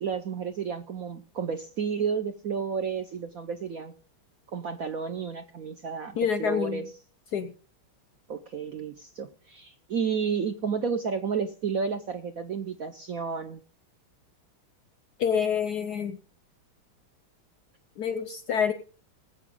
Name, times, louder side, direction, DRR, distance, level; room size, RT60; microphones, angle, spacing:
voice 1, 0.0-3.9 4.5-6.9 8.3-13.6, right 6 dB, 65° right, 6 dB, 0.8 m, -31 dB
voice 2, 6.2-6.8 7.3-7.5 15.2-16.2 18.0-18.7, left 7 dB, 65° left, 11 dB, 1.0 m, -27 dB
20.0 x 7.8 x 3.7 m, 0.41 s
omnidirectional pair, 2.4 m